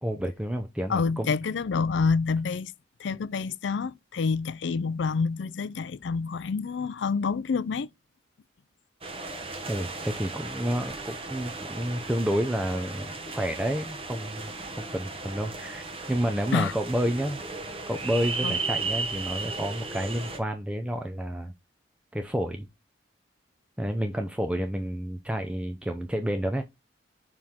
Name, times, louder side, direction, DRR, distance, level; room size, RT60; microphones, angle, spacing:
voice 1, 0.0-1.3 9.7-17.4 17.9-21.5 22.1-22.7 23.8-26.6, equal, 5° right, 0.6 m, -30 dB
voice 2, 0.9-2.7 3.0-7.9 16.5-16.7 18.4-18.6, left 5 dB, 70° left, 0.4 m, -27 dB
sound 1, 9.0-20.4, right 3 dB, 30° right, 1.0 m, -35 dB
5.7 x 4.8 x 3.6 m
head